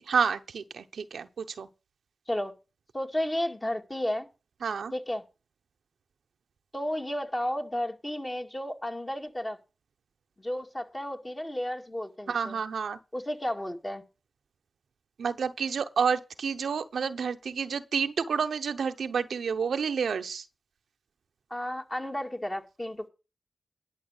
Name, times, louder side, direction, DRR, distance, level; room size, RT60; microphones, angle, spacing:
voice 1, 0.1-1.7 4.6-4.9 12.3-13.0 15.2-20.5, right 6 dB, 85° right, 0.8 m, -29 dB
voice 2, 2.9-4.3 4.9-5.2 6.7-9.6 10.4-12.6 13.1-14.0 21.5-23.1, left 1 dB, 25° left, 2.2 m, -32 dB
11.0 x 7.0 x 6.6 m
cardioid pair, 40°, 0 cm